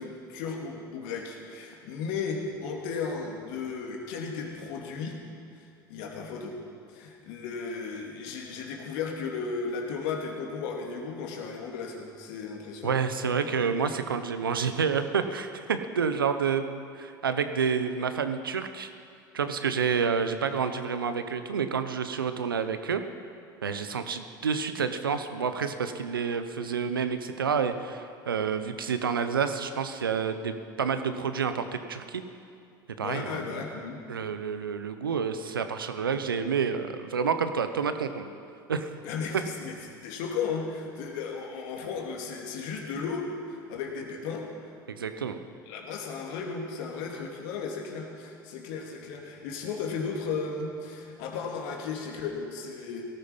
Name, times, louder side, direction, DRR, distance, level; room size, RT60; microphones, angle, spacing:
voice 1, 0.0-5.2 5.6-5.7 5.9-6.6 6.9-13.0 33.0-34.0 39.0-39.8 40.0-44.5 45.7-53.1, left 5 dB, 65° left, 1 dB, 2.7 m, -35 dB
voice 2, 12.8-16.7 16.9-18.9 19.3-23.0 23.6-32.2 33.0-33.6 34.1-38.3 38.7-38.9 44.9-45.4, right 6 dB, 90° right, 9 dB, 0.9 m, -29 dB
18.0 x 14.0 x 5.5 m, 2.4 s
hypercardioid pair, 70°, 11 cm